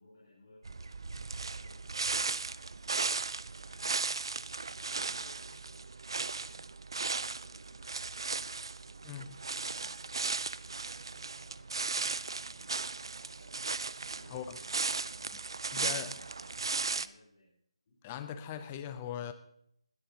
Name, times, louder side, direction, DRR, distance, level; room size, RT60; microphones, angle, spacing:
voice 1, 0.0-5.8 6.1-8.4 8.8-13.7 14.1-15.4 15.7-17.5 17.9-18.0, left 2 dB, 25° left, 4.2 m, -62 dB
sound 1, 0.6-17.1, right 4 dB, 50° right, 0.5 m, -36 dB
voice 2, 15.7-16.1 18.0-19.3, left 9 dB, 10° left, 0.5 m, -39 dB
20.5 x 13.0 x 2.9 m
figure-of-eight pair, 175°, 3 cm